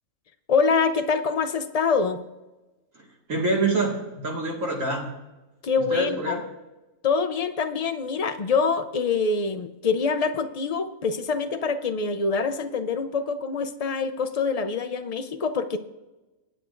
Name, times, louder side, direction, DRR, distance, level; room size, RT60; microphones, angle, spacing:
voice 1, 0.5-2.2 5.6-6.4 7.0-15.8, left 5 dB, 45° left, 9 dB, 0.5 m, -25 dB
voice 2, 3.0-5.1 5.9-6.4, right 2 dB, 70° right, -1 dB, 2.4 m, -26 dB
23.0 x 8.8 x 2.6 m, 1.1 s
omnidirectional pair, 1.4 m